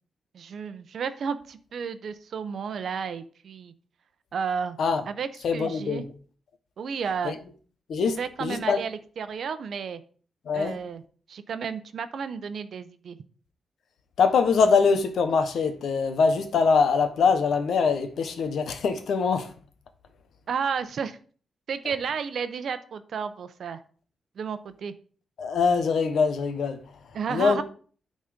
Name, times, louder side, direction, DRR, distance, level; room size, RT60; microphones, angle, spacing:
voice 1, 0.3-3.7 4.3-4.8 5.1-6.0 6.8-7.3 8.0-10.0 10.5-11.0 11.3-13.2 20.5-21.2 21.7-23.8 24.4-24.9 27.1-27.6, right 6 dB, 55° right, 0.8 m, -32 dB
voice 2, 5.4-6.0 7.2-7.3 7.9-8.8 10.5-10.8 14.2-19.5 25.4-26.8 27.3-27.6, left 5 dB, 65° left, 1.2 m, -23 dB
12.5 x 4.3 x 5.2 m
wide cardioid pair, 170°, 0 cm